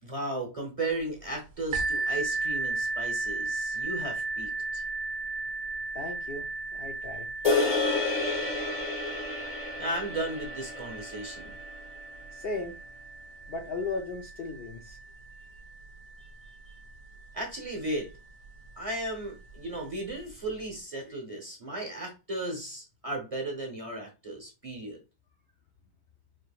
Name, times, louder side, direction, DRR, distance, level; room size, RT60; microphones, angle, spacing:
voice 1, 0.0-4.8 9.8-11.6 16.2-16.3 16.7-16.8 17.3-18.2 18.8-25.0, right 1 dB, 30° right, 0 dB, 0.9 m, -35 dB
sound 1, 1.7-17.3 18.0-18.1 18.7-18.8, right 3 dB, 85° right, 1.4 m, -36 dB
voice 2, 5.9-7.3 12.3-12.8 13.5-15.0, left 3 dB, 60° left, 2 dB, 0.7 m, -36 dB
sound 2, 7.4-11.9, left 3 dB, 30° left, 1.0 m, -30 dB
4.9 x 2.8 x 2.4 m, 0.29 s
omnidirectional pair, 1.5 m